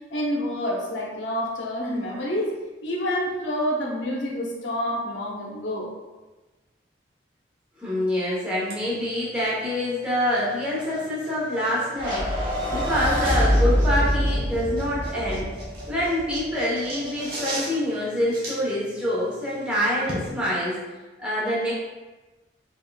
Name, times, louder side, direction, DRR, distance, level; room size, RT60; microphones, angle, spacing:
voice 1, 0.1-2.5 2.8-5.9, equal, 85° left, -2 dB, 0.8 m, -28 dB
voice 2, 7.8-15.5 15.9-20.8 21.2-21.7, left 1 dB, 5° right, -8 dB, 1.0 m, -26 dB
sound 1, 8.6-20.3, right 1 dB, 55° right, 0.9 m, -40 dB
sound 2, 12.0-16.4, equal, 30° right, 1.3 m, -24 dB
3.7 x 3.5 x 2.3 m, 1.2 s
head